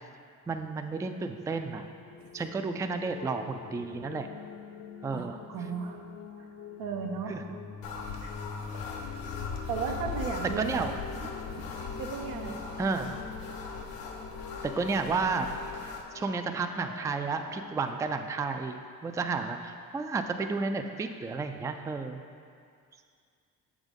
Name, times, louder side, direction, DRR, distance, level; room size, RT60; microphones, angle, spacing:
voice 1, 0.5-1.9 2.3-4.3 5.0-5.4 7.3-7.4 10.6-10.9 12.8-13.1 14.8-15.5 16.1-22.2, right 4 dB, 10° right, 6 dB, 0.3 m, -32 dB
sound 1, 1.8-17.8, left 6 dB, 45° left, 0.5 m, -43 dB
voice 2, 5.1-6.0 6.8-7.4 8.2-8.3 9.7-10.8 11.2-11.7 12.0-12.6, right 6 dB, 85° right, 2 dB, 0.8 m, -35 dB
sound 2, 7.8-16.0, left 4 dB, 90° left, 0.7 m, -41 dB
7.1 x 3.7 x 5.2 m, 2.2 s
supercardioid pair, 70°, 35 cm